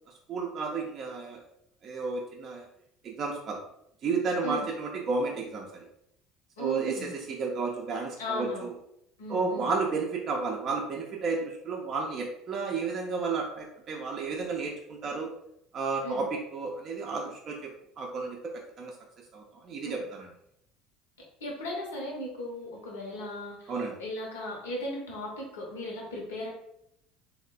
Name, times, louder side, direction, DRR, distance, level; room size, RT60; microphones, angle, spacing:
voice 1, 0.3-1.4 1.8-2.7 3.0-3.6 4.0-5.9 6.6-8.7 9.3-15.3 15.7-17.7 18.0-18.4 18.8-18.9 19.3-20.3 23.7-23.9, right 4 dB, 40° right, -1 dB, 0.4 m, -32 dB
voice 2, 6.6-7.1 8.2-8.7 9.2-9.7 16.0-16.3 21.4-26.5, equal, 75° left, -1 dB, 0.7 m, -36 dB
3.1 x 2.0 x 2.3 m, 0.78 s
figure-of-eight pair, 65°, 0 cm